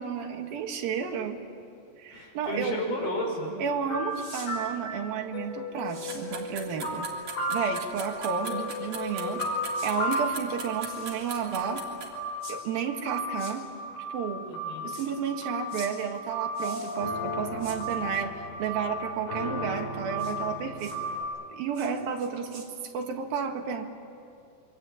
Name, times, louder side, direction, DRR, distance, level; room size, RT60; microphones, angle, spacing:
voice 1, 0.0-1.4 2.0-2.8 3.6-7.1 7.5-9.4 9.8-11.9 12.5-13.7 14.1-14.5 14.8-20.9 21.5-22.7 22.9-23.9, right 7 dB, 75° right, 3 dB, 3.6 m, -32 dB
voice 2, 2.1-3.6 14.5-14.9 18.0-18.2, equal, 45° left, 0 dB, 6.6 m, -33 dB
sound 1, 3.5-21.2, equal, 80° left, 7.4 m, -34 dB
sound 2, 4.1-4.5 5.9-6.2 7.9-8.1 9.7-9.9 10.8-11.5 12.4-12.6 13.3-13.5 14.9-15.1 15.7-15.9 16.5-17.0 17.6-17.8 20.2-20.3 20.8-21.0 21.7-21.9 22.2-22.7, right 3 dB, 30° right, 4.1 m, -45 dB
sound 3, 6.1-12.1, right 5 dB, 60° right, 4.7 m, -39 dB
27.5 x 24.0 x 8.7 m, 2.5 s
omnidirectional pair, 4.2 m